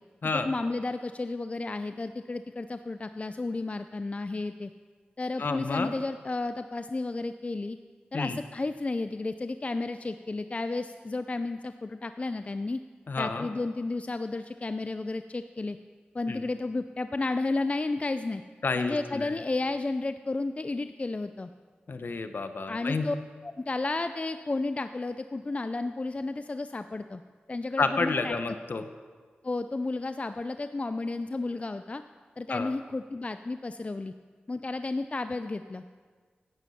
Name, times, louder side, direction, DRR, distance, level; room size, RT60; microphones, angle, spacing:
voice 1, 0.3-4.7 5.2-7.8 8.1-12.8 13.2-15.8 16.1-18.4 18.8-21.5 22.7-23.2 23.4-27.2 27.5-28.4 29.4-32.0 32.4-34.1 34.5-35.8, left 3 dB, 35° left, 10 dB, 0.4 m, -32 dB
voice 2, 5.4-5.9 8.1-8.4 13.1-13.5 16.3-16.4 18.6-19.4 21.9-23.1 27.8-28.8 32.5-32.7, left 4 dB, 65° left, 9 dB, 0.9 m, -30 dB
10.5 x 9.2 x 5.7 m, 1.6 s
cardioid pair, 45°, 4 cm